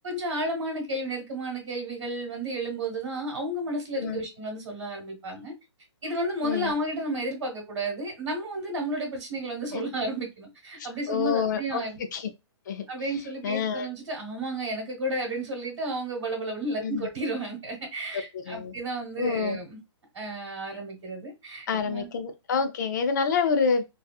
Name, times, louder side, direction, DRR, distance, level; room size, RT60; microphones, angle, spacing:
voice 1, 0.0-5.5 6.0-12.0 12.9-19.8 20.1-22.1, right 1 dB, 65° right, 1.1 m, -32 dB
voice 2, 10.8-11.8 12.1-12.3 12.7-13.9 16.8-17.1 18.1-18.7 19.2-19.6 21.7-23.8, left 6 dB, 40° left, 0.4 m, -28 dB
2.7 x 2.3 x 2.2 m
hypercardioid pair, 175°, 15 cm